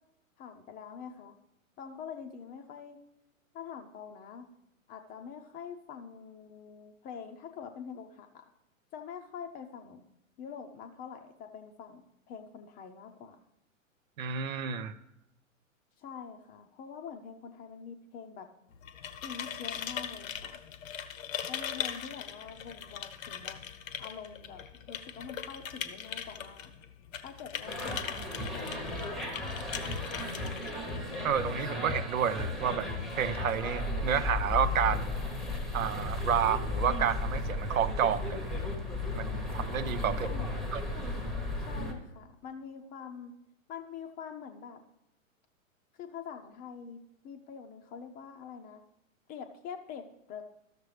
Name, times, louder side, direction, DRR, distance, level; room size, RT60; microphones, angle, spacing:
voice 1, 0.4-1.3 1.8-3.0 3.5-4.5 4.9-8.4 8.9-10.0 10.4-13.4 16.0-18.5 19.2-20.6 21.5-23.6 24.0-26.7 27.2-28.2 28.5-30.0 40.1-40.5 41.6-43.4 43.7-44.8 46.0-48.8 49.3-50.4, left 7 dB, 20° left, 6 dB, 0.6 m, -45 dB
voice 2, 14.2-15.0 31.2-32.9 33.2-35.2 35.7-38.5 39.1-40.3 40.7-40.8, right 8 dB, 80° right, 13 dB, 0.7 m, -30 dB
sound 1, 18.7-31.4, left 9 dB, 75° left, 0.8 m, -40 dB
sound 2, 27.7-41.9, left 2 dB, ahead, 0.9 m, -35 dB
13.0 x 6.6 x 3.2 m, 0.86 s
hypercardioid pair, 115°, 40 cm